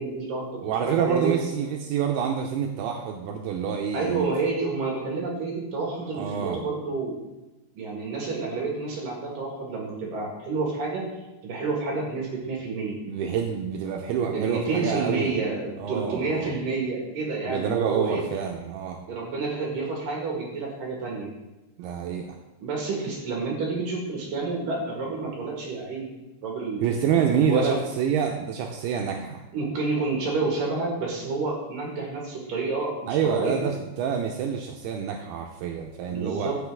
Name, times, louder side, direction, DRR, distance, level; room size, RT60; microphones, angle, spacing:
voice 1, 0.0-1.3 3.9-7.2 7.7-11.0 11.4-13.0 14.1-18.2 19.1-21.3 22.6-26.1 26.4-27.8 29.5-33.7 36.1-36.6, right 3 dB, 60° right, -2 dB, 3.0 m, -29 dB
voice 2, 0.6-4.3 6.0-6.6 13.1-15.3 15.8-16.5 17.5-19.0 21.8-22.3 26.8-29.4 33.1-36.5, right 7 dB, 85° right, 2 dB, 2.5 m, -27 dB
14.0 x 5.9 x 3.6 m, 1.0 s
omnidirectional pair, 5.0 m